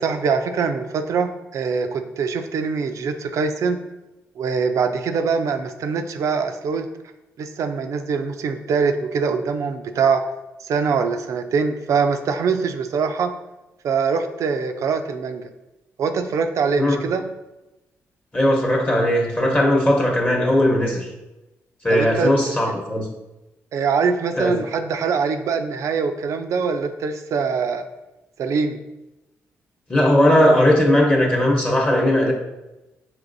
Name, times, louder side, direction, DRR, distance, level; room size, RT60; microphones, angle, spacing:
voice 1, 0.0-3.8 4.4-6.9 7.4-10.2 10.6-13.3 13.8-15.5 16.0-17.2 21.9-22.6 23.7-27.8 28.4-28.8, right 5 dB, 65° right, 7 dB, 0.4 m, -23 dB
voice 2, 18.3-21.1 21.8-23.1 24.4-24.6 29.9-32.3, left 1 dB, 25° left, -1 dB, 0.9 m, -18 dB
6.0 x 2.9 x 2.6 m, 1.0 s
supercardioid pair, 70°, 6 cm